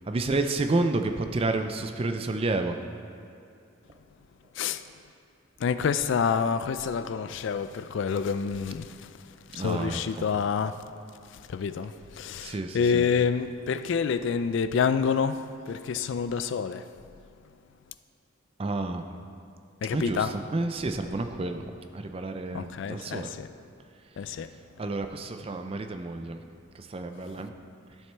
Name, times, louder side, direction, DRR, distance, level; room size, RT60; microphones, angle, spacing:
voice 1, 0.1-2.8 9.5-10.0 12.4-13.1 18.6-19.0 19.9-21.6 21.9-23.3 24.8-26.4 26.9-27.5, right 2 dB, 25° right, 0.4 m, -30 dB
voice 2, 5.6-8.9 9.5-10.8 11.5-16.8 19.8-20.3 22.5-23.5 24.2-24.5, left 6 dB, 60° left, 0.3 m, -28 dB
12.0 x 7.2 x 3.4 m
head